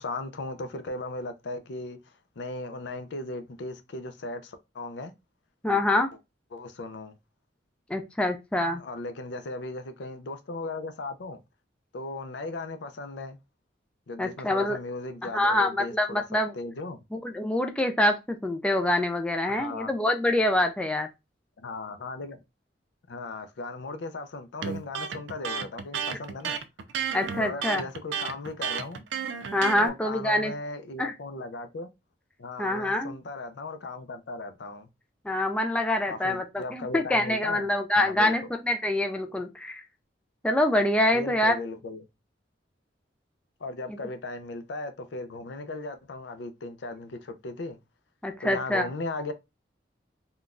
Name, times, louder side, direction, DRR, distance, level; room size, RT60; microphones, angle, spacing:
voice 1, 0.0-5.1 5.7-5.8 6.5-7.2 8.8-11.4 11.9-13.4 14.1-16.2 16.5-17.0 19.5-19.9 21.6-22.4 23.1-26.6 27.4-29.0 29.8-31.9 32.4-34.9 36.1-37.7 38.0-38.3 41.1-42.1 43.6-47.8 48.4-49.3, left 2 dB, 70° left, 0.5 m, -37 dB
voice 2, 5.6-6.1 7.9-8.8 14.2-14.8 15.2-16.5 17.1-21.1 27.1-27.8 29.5-30.5 31.0-31.1 32.6-33.2 35.3-39.8 40.4-41.6 48.2-48.9, left 1 dB, 5° left, 0.3 m, -25 dB
Electric guitar, 24.6-29.9, right 7 dB, 90° right, 0.4 m, -32 dB
3.7 x 2.3 x 2.4 m
head